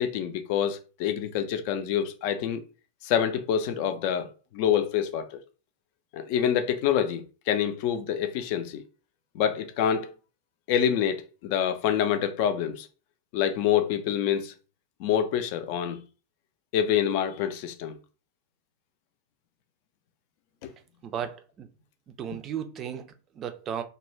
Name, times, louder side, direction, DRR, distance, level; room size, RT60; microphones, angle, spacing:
voice 1, 0.0-2.6 3.0-5.4 6.1-8.8 9.3-10.1 10.7-12.9 13.3-14.5 15.0-16.0 16.7-18.0 20.6-20.7, left 9 dB, 45° left, 0.4 m, -26 dB
voice 2, 21.0-21.7 22.1-23.8, right 8 dB, 30° right, 0.4 m, -35 dB
2.4 x 2.1 x 3.1 m
figure-of-eight pair, 90°, 0 cm